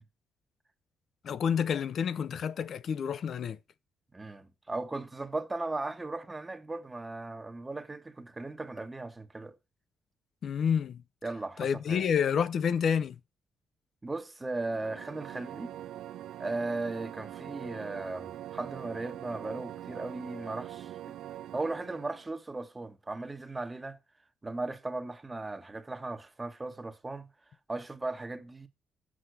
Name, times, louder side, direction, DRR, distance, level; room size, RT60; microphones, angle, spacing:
voice 1, 1.2-3.6 10.4-11.0 11.6-13.2, left 7 dB, 60° left, 0.5 m, -29 dB
voice 2, 4.1-9.5 11.2-12.0 14.0-15.8 16.4-20.9 21.5-24.0 24.4-27.3 27.7-28.7, right 2 dB, 20° right, 1.0 m, -37 dB
sound 1, 14.5-22.3, right 12 dB, 80° right, 0.4 m, -43 dB
6.3 x 5.6 x 6.4 m
cardioid pair, 90°, 0 cm